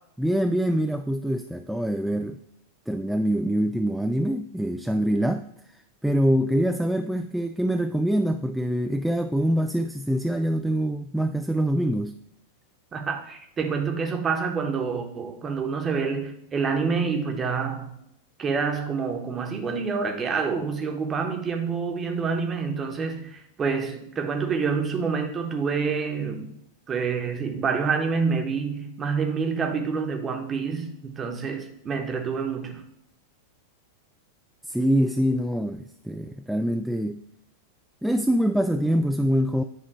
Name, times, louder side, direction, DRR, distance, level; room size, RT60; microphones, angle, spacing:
voice 1, 0.2-2.4 2.9-12.2 34.6-37.2 38.0-39.6, equal, ahead, 6 dB, 0.3 m, -25 dB
voice 2, 12.9-17.9 18.4-26.5 26.9-32.8, right 5 dB, 20° right, 4 dB, 1.1 m, -27 dB
9.3 x 3.1 x 4.5 m, 0.77 s
figure-of-eight pair, 90°, 0 cm